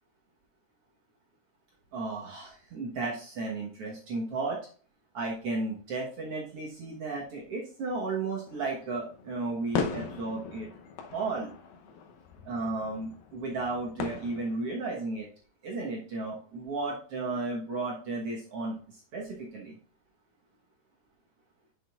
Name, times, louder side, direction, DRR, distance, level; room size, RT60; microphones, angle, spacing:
voice 1, 1.9-4.6 5.1-10.7 11.1-11.5 12.4-15.3 15.6-19.7, right 3 dB, 90° right, -3 dB, 1.3 m, -34 dB
sound 1, 8.5-14.9, left 6 dB, 75° left, 2.3 m, -39 dB
9.9 x 6.1 x 2.4 m, 0.42 s
omnidirectional pair, 4.7 m